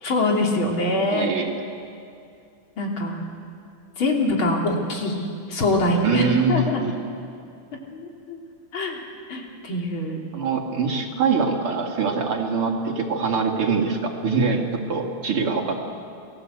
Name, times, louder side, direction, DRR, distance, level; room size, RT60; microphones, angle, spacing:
voice 1, 0.0-1.3 2.8-3.2 4.0-6.8 7.9-8.4 8.7-9.0 9.3-10.2, left 2 dB, 65° left, 0 dB, 3.8 m, -24 dB
voice 2, 1.1-1.5 6.0-6.9 10.3-15.8, right 4 dB, 85° right, 1 dB, 3.3 m, -23 dB
28.5 x 19.0 x 8.0 m, 2.5 s
omnidirectional pair, 2.4 m